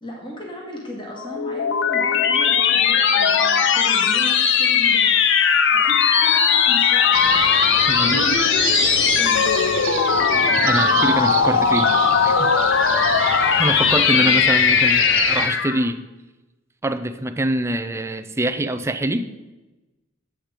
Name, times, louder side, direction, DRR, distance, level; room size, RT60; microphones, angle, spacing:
voice 1, 0.0-5.2 5.7-7.4 7.8-9.8 14.2-14.4, left 1 dB, 25° left, -2 dB, 1.8 m, -36 dB
sound 1, 1.2-15.9, left 6 dB, 65° left, 0.7 m, -18 dB
sound 2, 7.1-15.5, right 6 dB, 80° right, 1.7 m, -28 dB
voice 2, 7.9-8.2 10.6-11.9 12.2-12.5 13.6-16.1 16.8-19.3, right 1 dB, 15° right, 8 dB, 0.5 m, -24 dB
8.9 x 7.7 x 5.0 m, 1.1 s
head